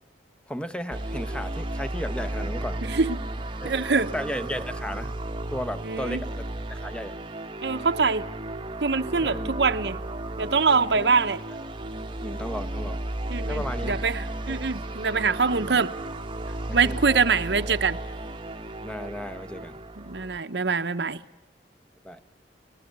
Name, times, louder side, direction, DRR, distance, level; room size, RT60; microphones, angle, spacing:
voice 1, 0.5-2.8 3.6-3.7 4.1-5.1 5.5-6.4 6.7-7.1 9.2-9.5 10.9-11.1 12.2-13.0 13.3-14.0 14.5-14.6 16.7-17.0 17.6-17.8 18.8-19.8 22.0-22.2, equal, 5° left, 1.1 m, -34 dB
sound 1, 0.9-20.4, right 1 dB, 30° right, 1.1 m, -34 dB
voice 2, 2.8-3.2 3.6-4.1 5.8-6.2 7.6-8.3 8.8-10.0 10.4-11.4 13.3-15.9 16.7-18.0 20.0-21.2, right 4 dB, 70° right, 1.0 m, -24 dB
25.0 x 20.0 x 8.1 m
head